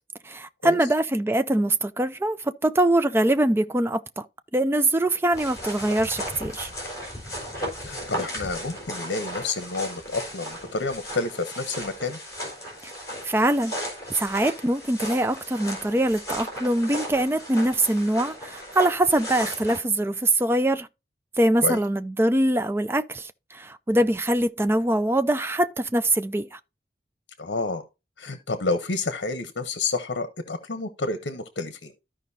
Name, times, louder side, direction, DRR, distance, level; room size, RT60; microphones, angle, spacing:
voice 1, 0.2-4.3 4.5-6.7 12.8-12.9 13.2-13.7 14.2-20.9 21.4-26.6, right 1 dB, 15° right, 0.4 m, -23 dB
sound 1, 5.3-19.8, equal, 20° left, 4.1 m, -36 dB
voice 2, 7.8-12.2 21.6-21.8 27.4-27.8 28.2-31.9, left 3 dB, 70° left, 0.9 m, -29 dB
13.5 x 5.1 x 2.7 m
head